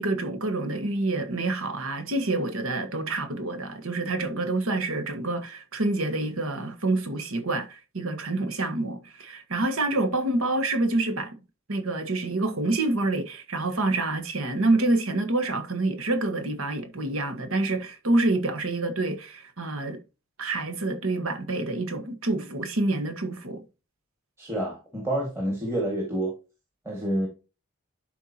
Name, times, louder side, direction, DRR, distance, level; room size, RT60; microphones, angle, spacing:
voice 1, 0.0-11.3 11.7-20.0 20.4-23.6, right 2 dB, 70° right, 1.4 m, -27 dB
voice 2, 24.4-26.3 26.9-27.3, right 1 dB, 10° right, 1.9 m, -28 dB
11.5 x 4.5 x 2.8 m
head